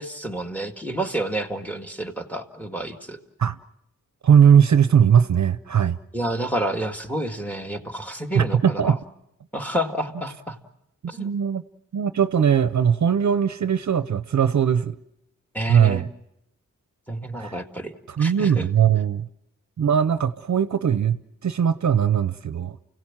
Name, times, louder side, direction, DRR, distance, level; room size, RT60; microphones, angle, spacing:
voice 1, 0.0-3.2 6.1-9.0 9.5-10.6 11.1-11.3 15.5-16.0 17.1-18.7, right 1 dB, 5° left, 6 dB, 2.0 m, -29 dB
voice 2, 4.2-6.0 8.3-9.0 11.0-11.6 11.9-15.0 15.7-16.1 17.4-17.6 18.1-19.3 19.8-22.8, right 8 dB, 60° right, 12 dB, 0.7 m, -20 dB
29.5 x 17.0 x 7.4 m, 0.86 s
cardioid pair, 80°, 33 cm